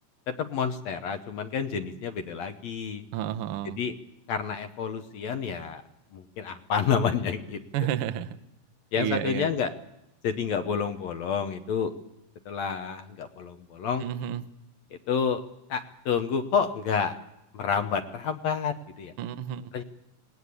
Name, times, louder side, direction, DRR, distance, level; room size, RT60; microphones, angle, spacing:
voice 1, 0.3-3.0 3.6-3.9 4.3-5.8 6.1-7.6 8.9-9.7 10.2-11.9 12.5-14.0 15.1-15.4 15.7-17.2 17.5-19.1 19.7-19.8, left 6 dB, 70° left, 7 dB, 1.9 m, -29 dB
voice 2, 3.1-3.8 7.7-8.3 9.0-9.5 14.0-14.4 19.2-19.6, right 11 dB, 70° right, 11 dB, 1.3 m, -30 dB
19.5 x 18.0 x 8.3 m, 0.87 s
omnidirectional pair, 3.7 m